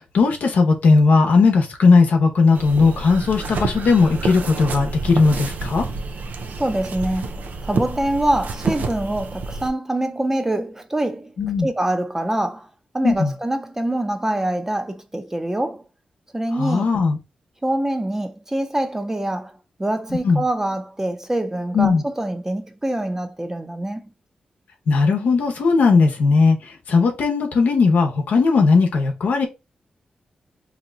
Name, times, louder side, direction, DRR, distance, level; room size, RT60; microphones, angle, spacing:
voice 1, 0.1-5.9 11.4-11.7 13.0-13.3 16.6-17.2 20.2-20.4 21.7-22.0 24.9-29.5, left 4 dB, 85° left, 0.8 m, -17 dB
sound 1, 2.5-9.7, right 4 dB, 80° right, 0.5 m, -29 dB
voice 2, 6.6-11.3 11.6-12.7 12.9-15.8 16.3-16.9 17.6-19.5 19.8-24.1, right 1 dB, 15° right, 0.6 m, -25 dB
2.8 x 2.2 x 3.8 m
cardioid pair, 70°, 3 cm